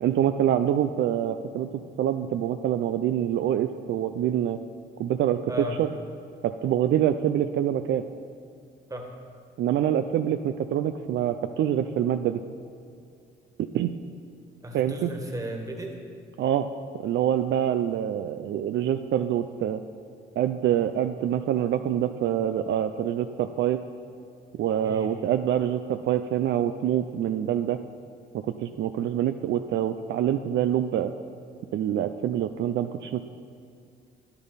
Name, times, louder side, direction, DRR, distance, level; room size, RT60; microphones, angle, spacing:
voice 1, 0.0-4.6 5.0-5.9 6.4-8.0 9.6-12.4 13.6-13.9 14.7-15.1 16.4-16.7 17.0-19.8 20.4-23.8 24.6-27.8 28.3-31.1 31.7-33.2, right 10 dB, 65° right, 9 dB, 0.4 m, -25 dB
voice 2, 14.6-15.9 24.8-25.1, equal, 15° right, 2 dB, 1.7 m, -34 dB
11.0 x 9.8 x 4.1 m, 2.4 s
cardioid pair, 90°, 20 cm